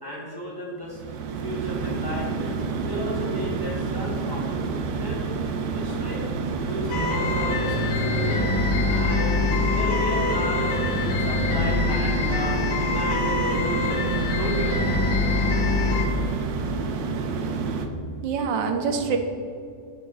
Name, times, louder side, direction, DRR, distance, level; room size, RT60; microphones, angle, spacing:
voice 1, 0.0-1.0 1.4-2.6 2.8-6.2 6.6-8.4 8.8-9.4 9.7-14.1 14.3-15.0, equal, 15° left, -6 dB, 1.5 m, -34 dB
sound 1, 0.9-17.9, right 4 dB, 65° right, 1.1 m, -29 dB
sound 2, 6.9-16.1, left 4 dB, 70° left, 1.4 m, -25 dB
voice 2, 17.9-19.2, right 5 dB, 85° right, 5 dB, 1.4 m, -26 dB
10.0 x 4.3 x 4.0 m, 2.4 s
omnidirectional pair, 2.0 m